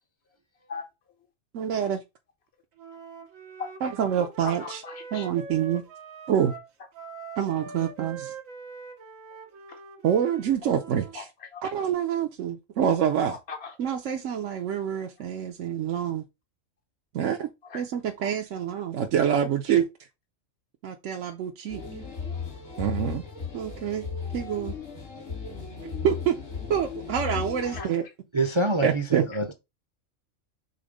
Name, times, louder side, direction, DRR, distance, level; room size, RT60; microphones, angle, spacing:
voice 1, 1.5-2.0 3.8-4.8 5.1-5.8 6.3-6.5 7.4-8.3 10.0-11.2 11.7-13.4 13.8-16.2 17.1-17.5 17.7-19.8 20.8-21.8 22.8-23.2 23.5-24.1 24.3-24.7 25.8-26.4 26.7-28.0 28.8-29.2, right 9 dB, 70° right, 1.0 m, -26 dB
Wind instrument woodwind instrument, 2.8-11.2, right 4 dB, 90° right, 1.5 m, -43 dB
voice 2, 4.4-5.3 9.7-9.8 11.1-11.7 13.3-13.8 17.6-17.8 27.6-28.1, left 5 dB, 55° left, 1.0 m, -39 dB
sound 1, 21.7-27.8, left 6 dB, 70° left, 2.7 m, -36 dB
voice 3, 28.3-29.5, right 2 dB, 35° right, 0.5 m, -26 dB
5.6 x 3.6 x 5.0 m
omnidirectional pair, 1.3 m